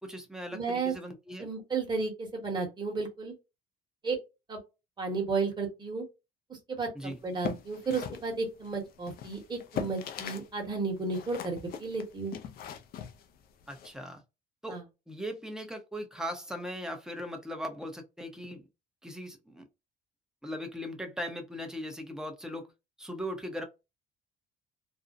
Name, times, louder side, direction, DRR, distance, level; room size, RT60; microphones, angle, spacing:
voice 1, 0.0-1.5 6.9-7.2 13.7-14.2 14.6-14.8 15.1-18.7 19.0-19.6 20.4-22.7 23.0-23.6, equal, 5° right, 0.7 m, -39 dB
voice 2, 0.5-0.9 1.4-3.3 4.0-4.2 4.5-4.6 5.0-6.0 6.5-12.3 14.7-14.8, right 4 dB, 25° right, 1.2 m, -33 dB
sound 1, 7.2-10.5 10.8-13.9, left 8 dB, 60° left, 0.5 m, -40 dB
2.6 x 2.0 x 2.5 m
cardioid pair, 110°, 17 cm